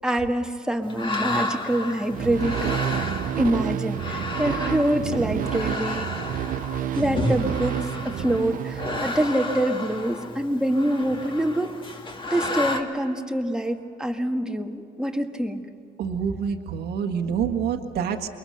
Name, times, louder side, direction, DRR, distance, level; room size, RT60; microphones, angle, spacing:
voice 1, 0.0-6.1 7.0-11.8 12.3-15.6, right 1 dB, 5° right, 4 dB, 1.7 m, -25 dB
sound 1, 0.8-12.8, left 2 dB, 30° left, 2.4 m, -32 dB
sound 2, 2.1-9.5, right 11 dB, 55° right, 0.6 m, -29 dB
voice 2, 16.0-18.3, right 7 dB, 75° right, 3 dB, 1.7 m, -27 dB
28.0 x 23.0 x 6.6 m, 2.6 s
cardioid pair, 110°, 17 cm